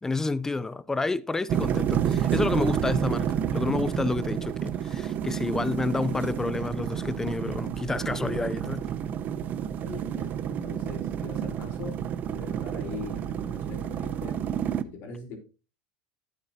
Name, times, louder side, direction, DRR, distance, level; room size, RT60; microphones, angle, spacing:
voice 1, 0.0-8.9, left 3 dB, 10° left, 0.6 m, -29 dB
sound 1, 1.5-14.8, right 9 dB, 45° right, 0.7 m, -30 dB
voice 2, 9.8-12.0 12.3-14.4 14.7-15.4, left 4 dB, 60° left, 4.1 m, -41 dB
11.5 x 8.8 x 2.8 m
supercardioid pair, 105°, 4 cm